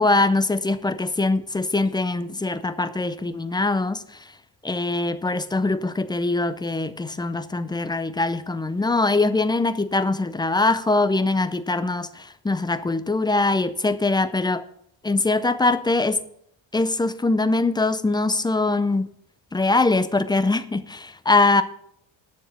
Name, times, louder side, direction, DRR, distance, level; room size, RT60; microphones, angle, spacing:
voice 1, 0.0-4.0 4.6-14.6 15.0-16.2 16.7-19.1 19.5-21.6, left 2 dB, 10° left, 11 dB, 0.4 m, -22 dB
9.7 x 7.0 x 7.2 m, 0.69 s
cardioid pair, 150°, 49 cm